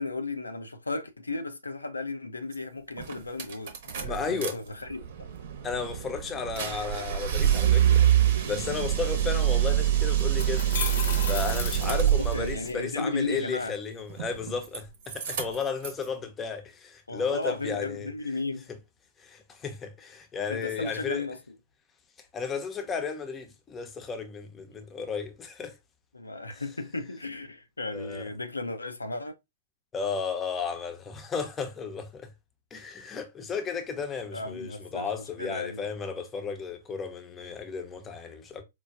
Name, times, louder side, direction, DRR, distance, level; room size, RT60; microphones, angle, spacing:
voice 1, 0.0-5.3 11.8-13.7 17.1-18.7 20.5-21.5 26.1-29.3 34.3-35.9, left 3 dB, 85° left, 0.5 m, -35 dB
sound 1, 2.5-2.6 3.0-4.5 4.9-12.6 14.1-14.8 15.1-16.0, right 11 dB, 50° right, 0.8 m, -26 dB
voice 2, 4.0-4.6 5.6-8.1 8.4-10.6 11.2-18.1 19.2-21.3 22.3-25.7 27.9-28.2 29.9-32.3 32.7-38.6, left 5 dB, 20° left, 0.6 m, -34 dB
sound 2, 9.5-9.6 10.2-12.7, left 6 dB, 55° left, 0.8 m, -34 dB
4.5 x 2.2 x 2.4 m
figure-of-eight pair, 110°, 0 cm